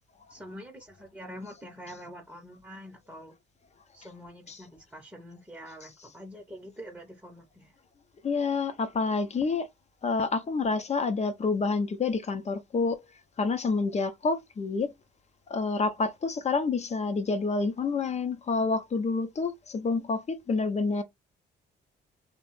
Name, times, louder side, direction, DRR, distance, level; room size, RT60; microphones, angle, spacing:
voice 1, 0.3-3.3 3.9-7.8, equal, 10° right, 0.7 m, -45 dB
voice 2, 8.2-9.7 10.0-13.0 13.4-14.9 15.5-21.0, left 4 dB, 35° left, 0.6 m, -28 dB
3.0 x 2.1 x 3.0 m
cardioid pair, 90°, 20 cm